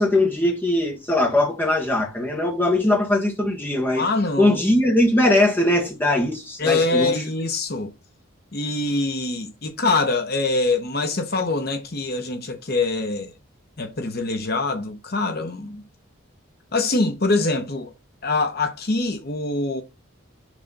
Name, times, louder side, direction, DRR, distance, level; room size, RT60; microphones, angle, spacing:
voice 1, 0.0-4.1 4.4-7.1, left 1 dB, 10° left, 1.5 m, -20 dB
voice 2, 4.0-4.6 6.6-7.9 8.5-13.3 13.8-15.8 16.7-17.9 18.2-19.8, left 3 dB, 50° left, 0.9 m, -24 dB
6.1 x 3.3 x 5.4 m
head